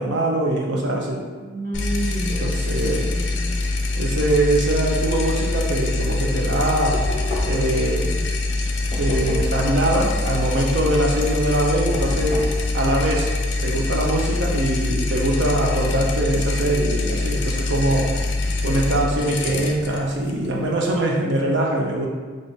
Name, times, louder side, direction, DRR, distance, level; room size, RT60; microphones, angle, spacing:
voice 1, 0.0-1.2 2.4-3.0 4.0-7.0 7.4-8.2 9.0-12.5 12.7-13.3 13.6-18.1 18.6-22.1, right 1 dB, 65° right, -1 dB, 0.6 m, -22 dB
voice 2, 1.4-3.6, right 1 dB, 40° right, -9 dB, 1.4 m, -30 dB
sound 1, 1.7-21.0, left 2 dB, 60° left, 0.4 m, -24 dB
Knock, 6.9-7.8 8.9-9.7 11.9-12.6, left 1 dB, 35° left, 0.7 m, -29 dB
3.4 x 2.5 x 3.9 m, 1.5 s
head